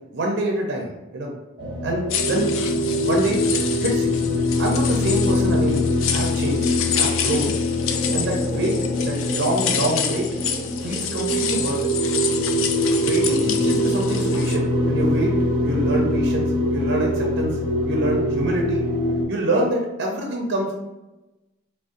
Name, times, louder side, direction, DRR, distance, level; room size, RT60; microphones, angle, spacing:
voice 1, 0.1-1.3 1.8-2.5 3.0-4.2 4.6-6.7 6.9-7.5 8.1-8.8 9.0-10.3 10.8-11.9 13.0-15.3 15.6-17.6 17.9-18.9 19.3-20.7, right 1 dB, 60° right, 0 dB, 0.5 m, -26 dB
sound 1, 1.6-19.2, left 1 dB, 25° right, 0.7 m, -23 dB
sound 2, 2.1-14.6, left 8 dB, 90° left, 0.3 m, -29 dB
3.7 x 2.0 x 2.5 m, 1.0 s
head